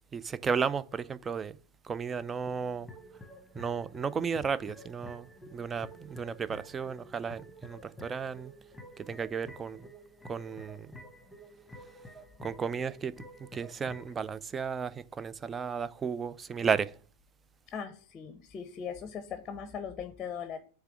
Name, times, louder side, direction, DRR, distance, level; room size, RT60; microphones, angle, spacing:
voice 1, 0.1-1.6 1.8-2.9 3.5-8.5 9.0-9.9 10.2-11.0 12.4-17.0, right 6 dB, 20° right, 0.4 m, -34 dB
sound 1, 2.5-14.2, equal, 5° left, 1.2 m, -50 dB
voice 2, 17.7-20.6, left 7 dB, 25° left, 0.7 m, -39 dB
8.1 x 3.3 x 6.1 m
figure-of-eight pair, 90°, 0 cm